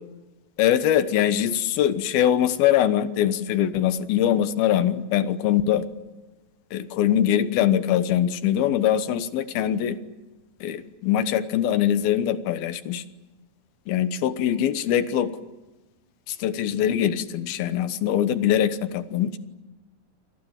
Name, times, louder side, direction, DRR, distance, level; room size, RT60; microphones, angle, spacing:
voice 1, 0.6-5.8 6.7-10.0 10.6-13.0 13.9-15.3 16.3-19.4, left 10 dB, 90° left, 11 dB, 3.1 m, -22 dB
29.0 x 24.0 x 7.4 m, 1.1 s
omnidirectional pair, 4.2 m